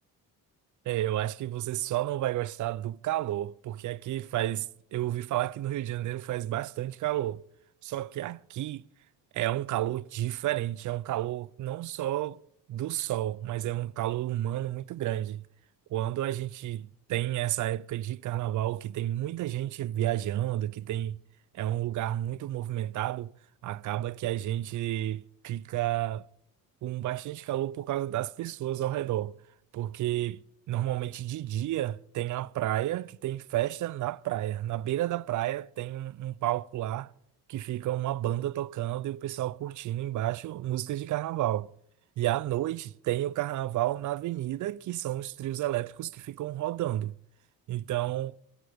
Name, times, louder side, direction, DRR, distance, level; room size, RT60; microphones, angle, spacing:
voice 1, 0.9-7.4 7.8-8.8 9.3-12.4 12.7-15.4 15.9-21.2 21.5-23.3 23.6-26.3 26.8-29.3 29.7-30.4 30.7-37.1 37.5-41.7 42.2-47.2 47.7-48.4, right 14 dB, 55° right, 0.6 m, -31 dB
28.5 x 11.5 x 3.5 m
cardioid pair, 130°, 36 cm